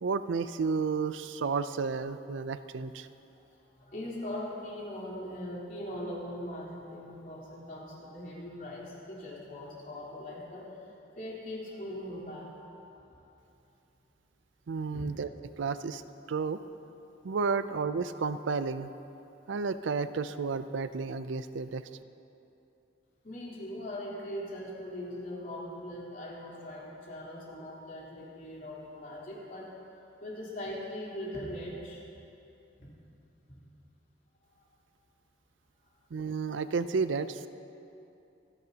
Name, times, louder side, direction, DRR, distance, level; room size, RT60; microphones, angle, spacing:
voice 1, 0.0-3.1 14.7-15.3 15.6-16.0 16.3-16.6 17.2-18.9 19.5-21.9 36.1-37.5, right 5 dB, 85° right, 12 dB, 0.5 m, -32 dB
voice 2, 3.6-10.7 11.2-12.6 13.0-13.2 14.9-15.1 23.2-29.7 30.2-32.0 32.8-32.9 33.5-33.6 34.5-34.8, left 1 dB, 50° left, -6 dB, 3.5 m, -40 dB
25.5 x 10.5 x 2.9 m, 2.8 s
head